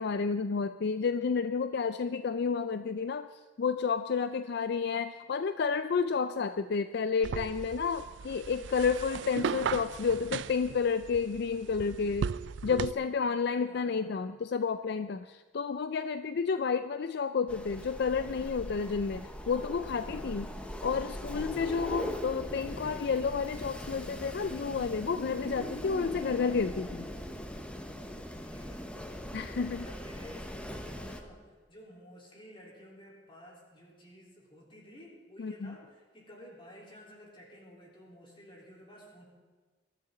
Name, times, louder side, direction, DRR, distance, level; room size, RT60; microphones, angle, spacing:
voice 1, 0.0-3.3 3.6-12.3 12.6-20.5 20.8-27.1 29.3-29.8 35.4-35.7, left 5 dB, 65° left, 11 dB, 0.4 m, -31 dB
sound 1, 7.2-12.9, right 6 dB, 85° right, 0.4 m, -37 dB
voice 2, 9.7-10.2 13.6-14.3 20.0-20.6 26.2-26.6 28.3-28.9 29.7-39.3, equal, 30° left, -3 dB, 3.9 m, -53 dB
Wind, 17.5-31.2, equal, 5° left, 1.0 m, -40 dB
22.5 x 13.5 x 3.9 m, 1.3 s
head